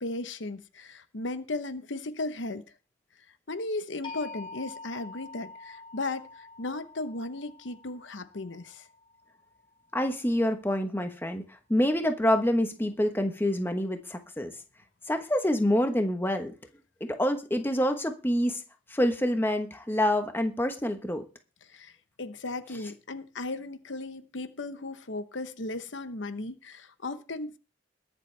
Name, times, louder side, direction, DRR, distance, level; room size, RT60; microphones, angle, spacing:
voice 1, 0.0-2.6 3.5-8.9 21.6-21.9 22.2-27.6, left 2 dB, 70° left, 1.0 m, -36 dB
sound 1, 4.0-10.0, left 3 dB, 25° left, 4.2 m, -46 dB
voice 2, 9.9-11.4 11.7-14.5 15.1-16.5 17.0-18.6 18.9-21.2, left 1 dB, 10° left, 1.1 m, -27 dB
21.5 x 7.3 x 3.3 m
head